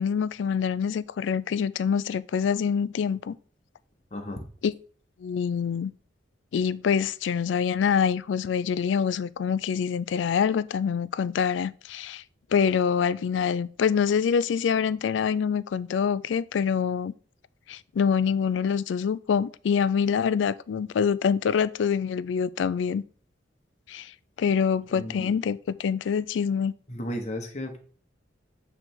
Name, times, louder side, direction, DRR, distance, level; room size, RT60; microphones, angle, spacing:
voice 1, 0.0-3.4 4.6-4.7 5.2-5.9 6.5-12.2 12.5-17.1 17.7-23.0 23.9-24.1 24.4-26.7, left 7 dB, 85° left, 0.3 m, -25 dB
voice 2, 4.1-4.5 24.9-25.3 26.9-27.8, left 1 dB, 40° left, 1.1 m, -34 dB
7.7 x 3.3 x 4.4 m
head